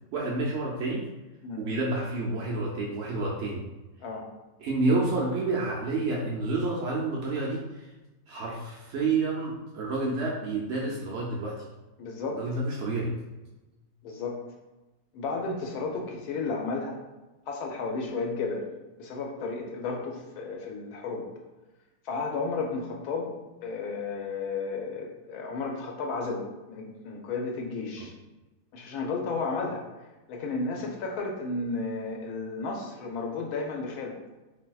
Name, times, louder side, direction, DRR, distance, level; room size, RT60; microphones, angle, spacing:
voice 1, 0.1-1.1 1.6-3.6 4.6-7.9 8.3-11.6 12.3-13.2 28.0-28.1, right 3 dB, 90° right, -3 dB, 0.6 m, -29 dB
voice 2, 12.0-12.4 14.0-14.4 15.1-17.0 17.5-18.7 19.0-21.3 22.0-23.4 23.6-26.4 26.7-28.1 28.7-29.8 30.3-34.1, left 3 dB, 75° left, 1 dB, 1.0 m, -33 dB
3.4 x 2.6 x 2.3 m, 1.1 s
omnidirectional pair, 1.7 m